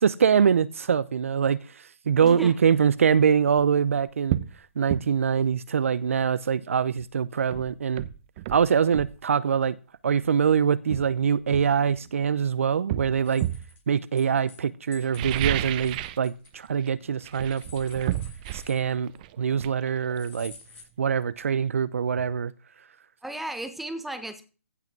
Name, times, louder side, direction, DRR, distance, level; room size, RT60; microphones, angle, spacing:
voice 1, 0.0-4.4 4.8-8.1 8.5-9.8 10.0-13.5 13.9-18.1 18.5-19.1 19.4-20.5 21.0-22.5, right 7 dB, 65° right, 17 dB, 0.6 m, -24 dB
voice 2, 2.2-2.6 23.2-24.4, right 1 dB, ahead, 8 dB, 1.3 m, -35 dB
sound 1, 3.5-3.7 4.3-4.5 4.9-5.1 7.0-7.1 7.5-9.2 10.2-10.4 10.9-12.3 12.9-13.7 15.0-16.3 16.5-16.9 17.2-20.8 21.1-21.2, right 14 dB, 35° right, 0.8 m, -32 dB
sound 2, 13.2-14.6 14.9-16.9 17.3-19.2 20.1-20.8, left 5 dB, 50° left, 7.6 m, -50 dB
15.5 x 5.8 x 5.9 m, 0.35 s
figure-of-eight pair, 135°, 8 cm